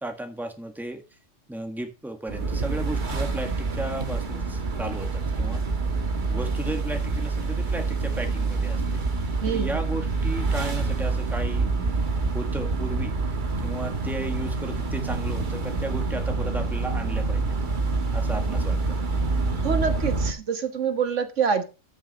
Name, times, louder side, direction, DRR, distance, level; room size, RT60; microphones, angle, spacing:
voice 1, 0.0-1.0 1.5-5.6 6.3-9.0 9.5-11.7 12.3-13.1 13.6-17.6 18.1-19.0, right 1 dB, ahead, 5 dB, 1.6 m, -34 dB
sound 1, 2.3-20.3, right 3 dB, 40° right, 1.4 m, -27 dB
voice 2, 9.4-9.8 19.6-21.6, right 6 dB, 75° right, 8 dB, 1.6 m, -26 dB
13.5 x 6.5 x 4.2 m, 0.31 s
omnidirectional pair, 1.3 m